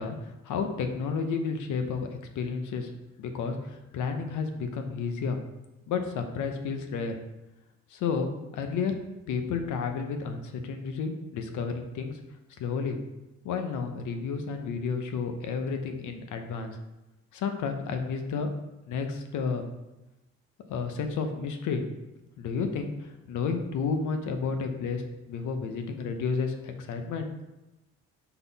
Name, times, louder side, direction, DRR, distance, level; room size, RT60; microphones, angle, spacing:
voice 1, 0.0-2.1 2.3-2.9 3.2-5.4 5.9-7.2 7.9-8.9 9.3-12.2 12.6-13.0 13.4-16.8 17.3-18.5 18.9-19.6 20.7-21.8 22.4-25.0 25.3-27.3, left 5 dB, 80° left, 6 dB, 0.8 m, -31 dB
5.7 x 4.0 x 4.1 m, 1.0 s
cardioid pair, 90°, 30 cm